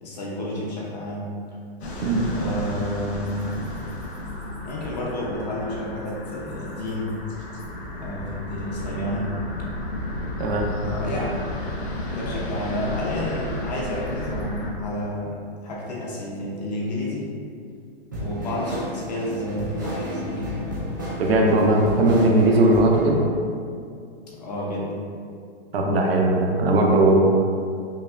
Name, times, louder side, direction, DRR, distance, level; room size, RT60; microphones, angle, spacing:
voice 1, 0.0-1.3 2.3-3.8 4.6-7.1 8.0-9.3 10.8-11.4 12.1-17.3 18.2-20.8 24.3-25.0, left 1 dB, 40° left, -4 dB, 0.7 m, -30 dB
sound 1, 1.8-14.7, left 1 dB, 80° left, 1.0 m, -32 dB
voice 2, 10.4-10.7 21.2-23.2 25.7-27.3, right 1 dB, 70° right, 0 dB, 0.7 m, -18 dB
sound 2, 18.1-23.2, right 1 dB, 20° right, 0.3 m, -32 dB
5.3 x 2.2 x 2.4 m, 2.3 s
hypercardioid pair, 175°, 32 cm